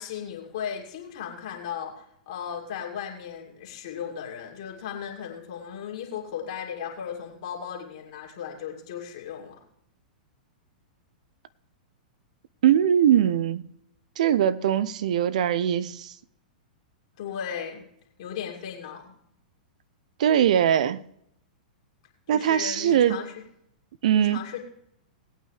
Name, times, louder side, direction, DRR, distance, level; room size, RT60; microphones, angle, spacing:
voice 1, 0.0-9.6 17.2-17.8 18.2-19.1 22.3-23.3 24.1-24.6, left 8 dB, 50° left, 2.5 m, -36 dB
voice 2, 12.6-13.7 14.2-16.1 20.2-21.0 22.3-23.2 24.0-24.4, right 10 dB, 60° right, 0.6 m, -21 dB
18.5 x 8.8 x 3.3 m
figure-of-eight pair, 100°, 4 cm